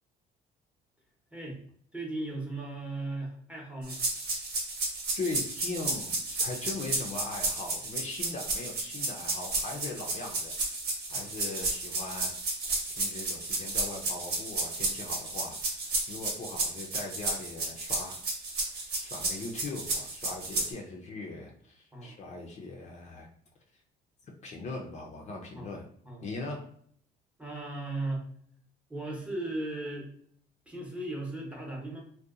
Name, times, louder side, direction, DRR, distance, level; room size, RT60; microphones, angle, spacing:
voice 1, 1.9-4.0 9.7-9.8 11.1-11.3 21.9-22.2 25.5-25.7 26.0-26.3 27.4-28.3 28.9-30.1 30.7-32.0, right 2 dB, 5° right, -2 dB, 0.7 m, -37 dB
sound 1, 3.9-20.7, right 2 dB, 75° right, 1.0 m, -32 dB
voice 2, 5.2-10.5 11.1-12.3 12.9-15.6 16.1-18.2 18.7-23.3 24.4-25.9 26.2-26.7, left 3 dB, 40° left, 0 dB, 0.5 m, -40 dB
2.7 x 2.2 x 2.4 m, 0.62 s
cardioid pair, 110°, 17 cm